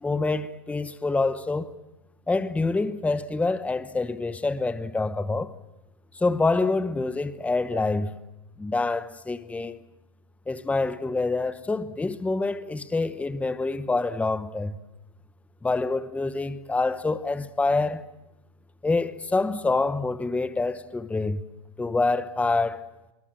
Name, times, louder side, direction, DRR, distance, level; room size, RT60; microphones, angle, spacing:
voice 1, 0.0-1.7 2.3-5.5 6.1-8.1 8.6-9.8 10.5-14.8 15.6-18.1 18.8-21.4 21.8-22.8, left 3 dB, 5° left, 1.0 m, -26 dB
24.5 x 23.0 x 7.7 m
hypercardioid pair, 115°, 18 cm